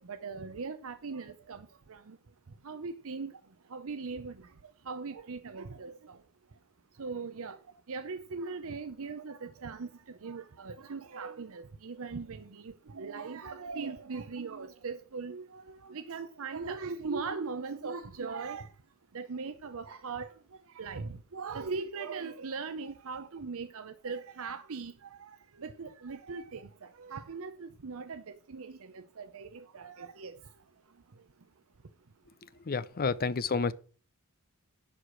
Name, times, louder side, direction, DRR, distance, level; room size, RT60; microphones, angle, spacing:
voice 1, 0.1-2.2 2.6-3.3 3.7-4.3 4.9-5.9 7.0-7.6 7.9-9.9 10.2-18.7 19.1-20.3 20.8-25.3 25.6-26.7 27.0-28.2 28.5-30.4, right 4 dB, 65° right, 0.7 m, -39 dB
voice 2, 32.7-33.7, left 4 dB, 45° left, 0.6 m, -29 dB
11.5 x 4.8 x 7.5 m
head